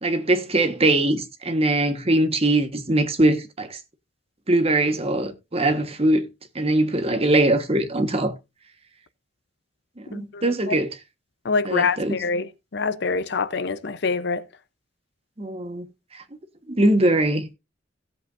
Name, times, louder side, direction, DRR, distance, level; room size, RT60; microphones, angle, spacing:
voice 1, 0.0-3.8 4.5-6.2 6.5-8.3 10.1-10.9 11.6-12.2 15.4-15.8 16.7-17.5, right 1 dB, 35° right, 1.4 m, -21 dB
voice 2, 10.1-10.7 11.4-14.4, left 4 dB, 65° left, 0.7 m, -25 dB
17.0 x 7.9 x 2.6 m
head